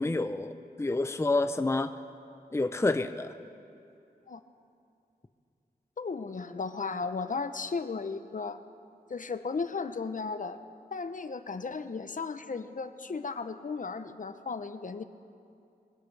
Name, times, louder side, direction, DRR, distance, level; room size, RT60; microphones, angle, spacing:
voice 1, 0.0-1.9 2.5-3.3, left 2 dB, 15° left, 9 dB, 0.6 m, -28 dB
voice 2, 6.0-8.6 9.1-10.6 10.9-15.0, left 4 dB, 50° left, 10 dB, 0.7 m, -35 dB
25.0 x 16.5 x 3.4 m, 2.5 s
wide cardioid pair, 70°, 17 cm